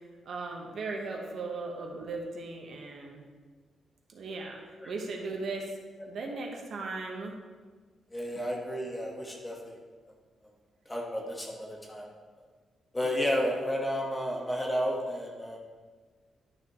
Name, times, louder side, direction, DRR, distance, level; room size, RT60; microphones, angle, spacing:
voice 1, 0.2-3.2 4.1-4.6 4.9-5.7 6.1-7.3, right 3 dB, 55° right, 1 dB, 1.2 m, -37 dB
voice 2, 8.1-9.7 10.9-12.1 12.9-15.6, equal, 10° left, -2 dB, 1.4 m, -32 dB
11.5 x 6.6 x 3.1 m, 1.4 s
cardioid pair, 145°, 0 cm